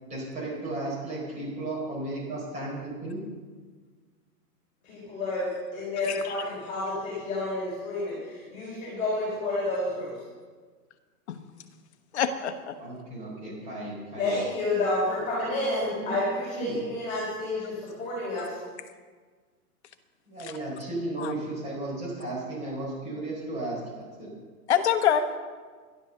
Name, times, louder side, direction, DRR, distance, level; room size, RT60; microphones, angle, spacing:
voice 1, 0.0-3.2 12.8-14.4 16.0-16.2 16.6-16.8 20.3-24.3, right 2 dB, 15° right, -4 dB, 4.7 m, -34 dB
voice 2, 4.8-10.2 14.2-18.6, left 2 dB, 15° left, -7 dB, 4.1 m, -30 dB
voice 3, 12.1-12.7 20.4-20.5 21.2-21.3 24.7-25.4, left 8 dB, 45° left, 8 dB, 1.3 m, -26 dB
11.5 x 11.5 x 6.7 m, 1.5 s
hypercardioid pair, 165°, 47 cm